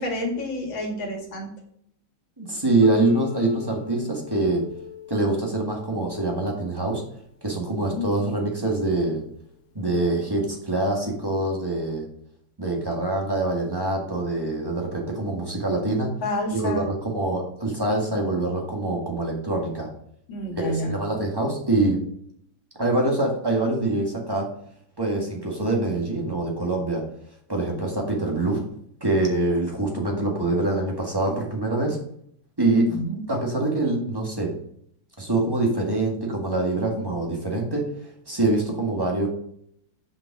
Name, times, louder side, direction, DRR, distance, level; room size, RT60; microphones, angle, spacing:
voice 1, 0.0-1.5 7.8-8.0 16.2-16.9 20.3-20.9 32.9-33.2, left 1 dB, 65° left, 0 dB, 2.7 m, -29 dB
voice 2, 2.4-4.6 5.1-7.0 7.4-9.2 9.7-12.1 12.6-16.1 16.5-19.9 20.6-22.0 22.8-24.5 25.0-27.0 27.5-28.6 29.0-32.0 32.6-32.9 33.3-34.5 35.2-37.8 38.3-39.3, right 2 dB, 10° right, -1 dB, 1.6 m, -24 dB
Piano, 2.8-8.1 9.0-9.1 9.6-9.7 10.5-10.6 11.6-11.7, left 8 dB, 85° left, 1.6 m, -38 dB
6.5 x 5.3 x 4.8 m, 0.69 s
omnidirectional pair, 2.2 m